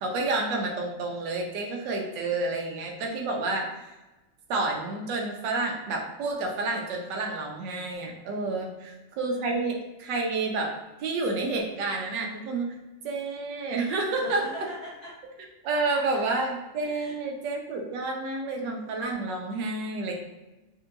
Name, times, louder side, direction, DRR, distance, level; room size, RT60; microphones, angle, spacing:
voice 1, 0.0-3.9 4.5-8.9 9.2-10.7 11.0-12.7 13.0-14.4 15.6-20.1, right 3 dB, 75° right, 1 dB, 1.4 m, -29 dB
voice 2, 14.2-15.1 15.9-16.0 16.8-17.1, equal, 50° left, -7 dB, 1.1 m, -42 dB
5.5 x 2.7 x 2.5 m, 1.1 s
omnidirectional pair, 2.0 m